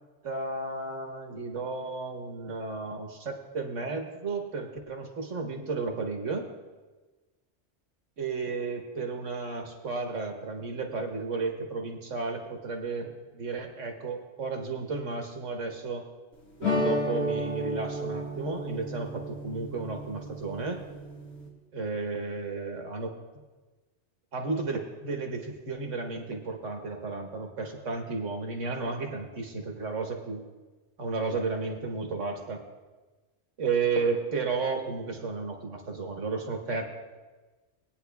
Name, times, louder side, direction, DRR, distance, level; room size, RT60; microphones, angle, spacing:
voice 1, 0.2-6.5 8.2-16.0 16.6-20.8 21.7-23.1 24.3-30.4 31.0-32.6 33.6-36.8, right 4 dB, 85° right, 3 dB, 1.6 m, -33 dB
sound 1, 16.6-21.5, equal, 65° left, 2.0 m, -32 dB
19.5 x 9.5 x 2.3 m, 1.2 s
omnidirectional pair, 1.2 m